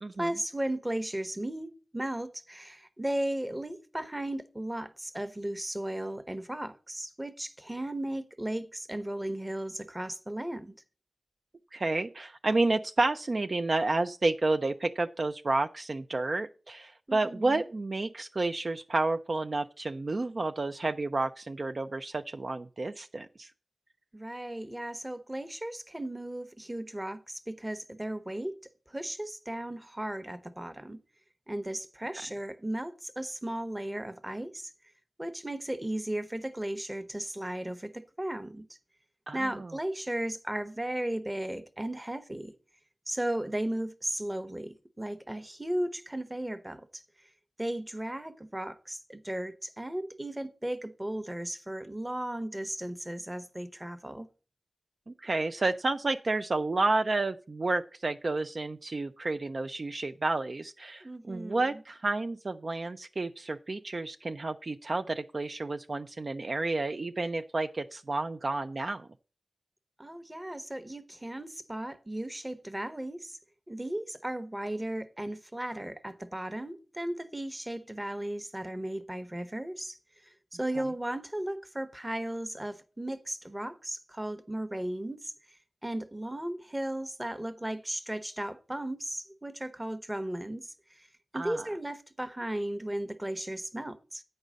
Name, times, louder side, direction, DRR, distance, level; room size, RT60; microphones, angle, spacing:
voice 1, 0.2-10.8 17.1-17.6 24.1-28.5 28.9-31.0 31.5-34.7 35.2-38.7 39.3-42.5 43.1-47.3 47.6-54.3 61.0-61.8 70.0-73.4 73.7-80.0 80.5-85.3 85.8-91.1 91.3-94.2, right 1 dB, 15° right, 0.9 m, -36 dB
voice 2, 11.7-23.5 39.3-39.7 55.1-69.1 91.3-91.6, right 2 dB, 45° right, 0.4 m, -30 dB
9.0 x 5.4 x 6.2 m
wide cardioid pair, 90°, 0 cm